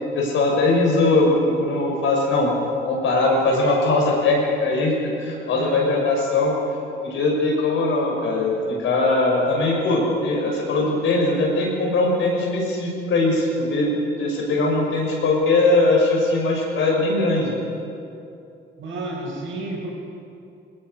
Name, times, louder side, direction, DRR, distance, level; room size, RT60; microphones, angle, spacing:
voice 1, 0.1-2.5 2.8-6.6 7.0-13.9 14.2-17.5, left 2 dB, 75° left, -1 dB, 6.0 m, -20 dB
voice 2, 18.8-19.9, right 2 dB, 75° right, -2 dB, 6.9 m, -31 dB
20.5 x 20.0 x 6.6 m, 2.7 s
cardioid pair, 90°, 20 cm